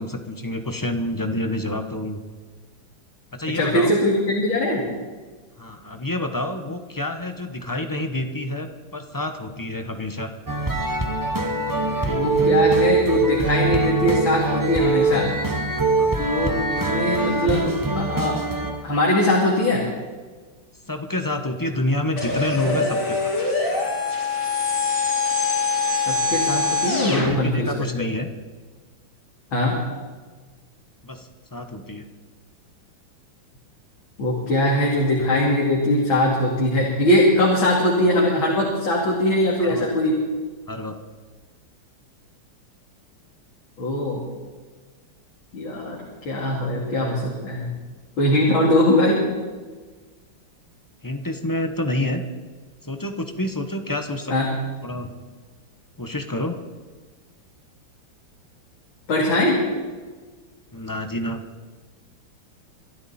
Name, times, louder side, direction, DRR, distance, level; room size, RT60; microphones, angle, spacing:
voice 1, 0.0-2.2 3.3-4.0 5.6-10.3 15.9-16.2 20.9-23.3 27.1-28.3 31.0-32.1 39.6-39.9 40.7-41.0 51.0-52.2 52.8-55.1 56.0-56.6 60.7-61.4, left 1 dB, 15° left, 6 dB, 0.7 m, -28 dB
voice 2, 3.5-4.8 12.0-15.3 16.2-18.4 18.8-19.8 25.9-28.1 29.5-29.8 34.2-40.2 43.8-44.2 45.5-46.0 46.2-47.7 48.2-49.2 54.3-54.5 59.1-59.6, left 1 dB, 80° left, -3 dB, 3.4 m, -21 dB
sound 1, 10.5-18.8, right 3 dB, 20° right, 0.6 m, -23 dB
sound 2, 22.2-27.3, left 4 dB, 55° left, 6.5 m, -23 dB
25.0 x 12.5 x 4.3 m, 1.4 s
omnidirectional pair, 2.1 m